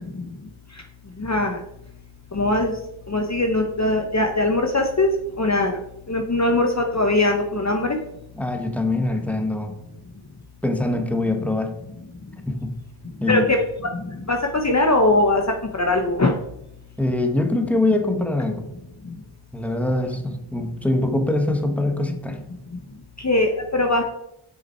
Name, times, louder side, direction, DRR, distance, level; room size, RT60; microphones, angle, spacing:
voice 1, 1.2-1.6 2.3-2.7 3.1-5.1 5.4-5.8 6.1-8.0 13.3-13.6 14.3-15.4 15.8-16.3 23.2-24.0, left 2 dB, 35° left, 4 dB, 0.9 m, -20 dB
voice 2, 8.3-9.7 10.6-11.7 12.5-12.7 13.2-13.5 17.0-18.6 19.5-22.4, left 2 dB, 5° left, 5 dB, 1.3 m, -23 dB
7.1 x 6.0 x 4.4 m, 0.81 s
wide cardioid pair, 45°, 50 cm